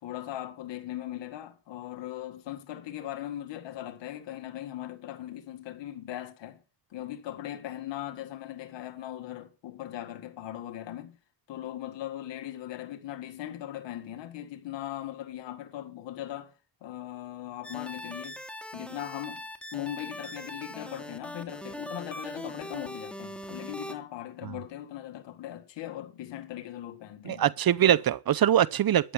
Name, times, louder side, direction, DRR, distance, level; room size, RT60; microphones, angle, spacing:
voice 1, 0.0-6.6 6.9-11.2 11.5-16.5 16.8-18.4 18.7-19.4 19.7-27.4 27.8-27.9, left 12 dB, 80° left, 2.0 m, -39 dB
sound 1, 17.6-23.9, left 1 dB, ahead, 2.7 m, -41 dB
voice 2, 27.3-29.1, right 11 dB, 55° right, 0.8 m, -23 dB
13.5 x 10.5 x 5.7 m
supercardioid pair, 60°, 43 cm